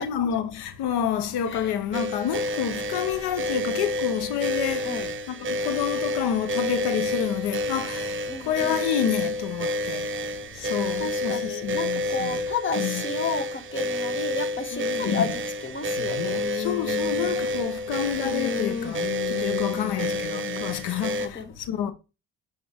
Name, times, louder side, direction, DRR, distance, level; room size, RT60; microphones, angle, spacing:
voice 1, 0.0-10.1 10.5-12.4 12.8-13.0 15.0-15.3 16.5-21.9, left 9 dB, 80° left, 0.8 m, -29 dB
sound 1, 1.9-21.3, left 1 dB, 30° right, 0.6 m, -29 dB
voice 2, 8.3-8.8 11.0-16.4 19.7-20.2 21.2-21.5, left 4 dB, 30° left, 1.2 m, -32 dB
sound 2, 14.7-15.3 16.0-17.8 18.2-20.7, left 7 dB, 50° left, 0.8 m, -34 dB
7.8 x 3.6 x 3.4 m
cardioid pair, 95°, 38 cm